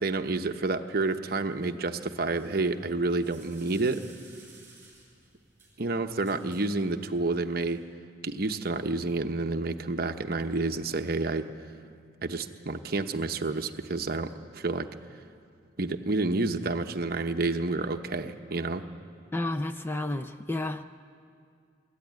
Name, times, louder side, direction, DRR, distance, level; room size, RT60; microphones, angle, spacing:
voice 1, 0.0-4.0 5.8-7.8 8.2-11.5 12.2-14.9 15.8-18.8, right 3 dB, 50° right, 7 dB, 0.9 m, -29 dB
sound 1, 2.3-7.8, right 3 dB, 10° right, 7.5 m, -57 dB
voice 2, 19.3-20.8, left 2 dB, 10° left, 8 dB, 0.4 m, -31 dB
26.5 x 13.5 x 9.5 m, 2.3 s
head